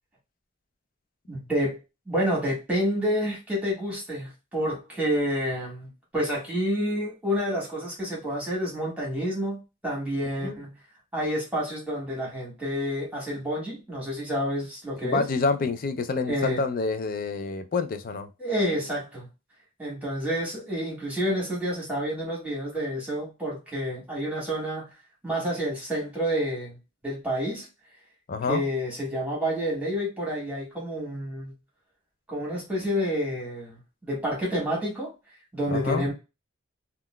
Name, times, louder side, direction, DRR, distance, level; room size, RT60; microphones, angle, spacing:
voice 1, 1.3-1.8 2.1-10.8 11.1-15.2 16.3-16.6 18.4-19.3 19.8-24.9 25.2-26.8 27.0-27.7 28.5-31.5 32.3-35.1 35.5-36.1, equal, 10° right, 1.5 m, -29 dB
voice 2, 15.0-18.3 28.3-28.6 35.7-36.0, left 4 dB, 45° left, 0.4 m, -27 dB
3.7 x 2.3 x 2.2 m
head